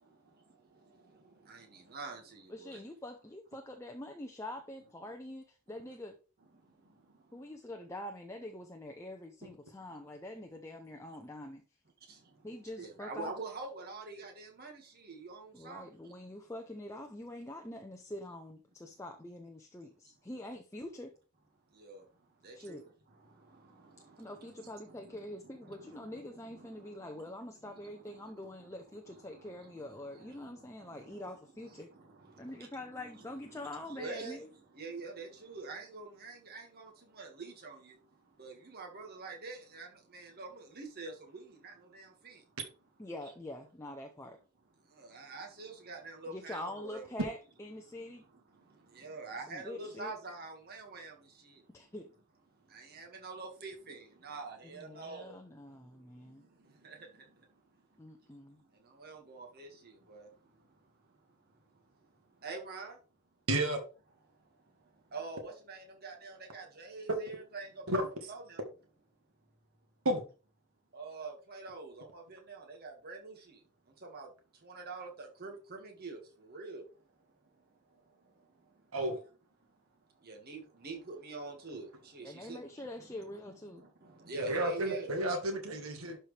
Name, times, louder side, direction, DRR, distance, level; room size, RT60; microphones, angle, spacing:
voice 1, 2.5-6.2 7.3-11.6 12.4-13.3 15.5-21.1 22.5-22.9 24.2-31.9 32.4-34.5 43.0-44.4 46.3-48.3 49.5-50.1 51.7-52.1 54.6-56.4 58.0-58.6 82.2-83.8, left 1 dB, 15° left, 0.6 m, -45 dB
voice 2, 12.8-14.7 15.1-15.8 21.8-22.0 22.4-22.8 33.9-34.4 34.8-36.9 37.2-37.8 38.4-39.9 40.1-40.5 40.8-41.1 41.6-41.7 45.1-47.1 49.0-51.1 52.9-55.3 59.0-59.7 60.1-60.3 62.4-62.9 65.1-68.0 68.3-68.6 70.9-73.3 74.1-74.3 74.7-75.5 75.8-76.2 76.5-76.8 80.3-81.9 82.1-82.6 84.3-85.1, right 3 dB, 45° right, 1.8 m, -44 dB
voice 3, 63.5-63.8 67.9-68.1 70.0-70.2 78.9-79.2 84.3-86.2, right 1 dB, 65° right, 1.6 m, -31 dB
11.5 x 4.4 x 3.3 m
head